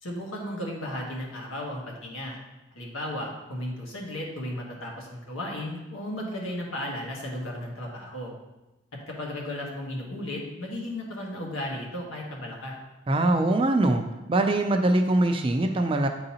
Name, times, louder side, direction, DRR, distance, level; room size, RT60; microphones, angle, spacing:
voice 1, 0.0-2.4 2.7-8.3 9.1-12.8, left 1 dB, 90° left, -2 dB, 1.4 m, -35 dB
voice 2, 13.1-14.0 14.3-16.1, right 2 dB, 25° right, 5 dB, 0.4 m, -22 dB
8.8 x 3.9 x 2.8 m, 1.0 s
head